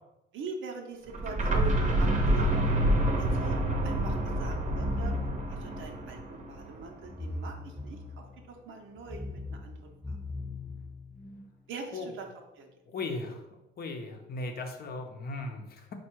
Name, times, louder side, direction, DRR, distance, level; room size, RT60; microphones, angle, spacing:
voice 1, 0.3-2.8 3.2-3.6 3.8-5.1 5.5-8.0 8.5-10.2 11.7-12.3 12.6-12.7, right 3 dB, 75° right, 3 dB, 0.8 m, -43 dB
sound 1, 1.1-6.9, right 1 dB, 40° right, 0.8 m, -28 dB
sound 2, 4.5-5.7 7.0-8.5 9.0-11.5, left 2 dB, 5° left, 0.3 m, -38 dB
voice 2, 12.9-13.4 13.8-15.9, left 2 dB, 50° left, 4 dB, 0.7 m, -37 dB
4.5 x 2.3 x 4.4 m, 0.93 s
cardioid pair, 110°, 20 cm